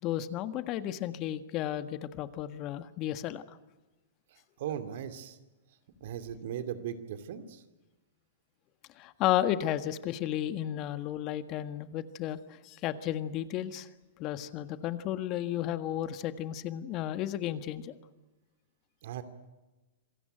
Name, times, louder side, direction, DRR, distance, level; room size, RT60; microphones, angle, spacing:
voice 1, 0.0-3.4 9.0-12.4 12.6-13.9 14.2-17.9, left 12 dB, 40° left, 11 dB, 1.6 m, -33 dB
voice 2, 4.6-5.4 6.0-7.6 19.0-19.2, right 9 dB, 65° right, 10 dB, 2.6 m, -38 dB
26.5 x 17.0 x 9.2 m, 1.1 s
hypercardioid pair, 115°, 0 cm